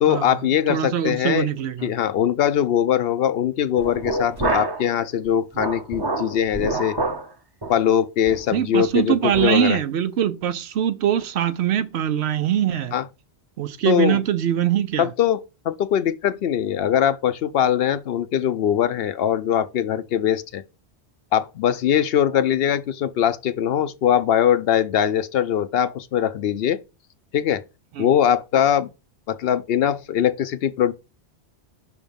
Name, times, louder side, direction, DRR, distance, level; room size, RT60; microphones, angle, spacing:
voice 1, 0.0-1.5 1.8-7.0 7.7-9.8 12.9-13.1 13.8-14.2 15.0-20.6 21.3-26.8 27.3-27.6 28.0-28.9 29.3-30.9, left 9 dB, 65° left, 0.7 m, -21 dB
voice 2, 0.7-1.9 8.5-13.0 13.6-15.1 28.0-28.1, right 9 dB, 75° right, 0.9 m, -22 dB
sound 1, 3.8-4.9 5.2-7.3 7.6-7.8 8.3-8.5 8.9-9.0 9.3-9.5, right 2 dB, 25° right, 0.8 m, -27 dB
5.8 x 3.6 x 5.2 m
omnidirectional pair, 1.1 m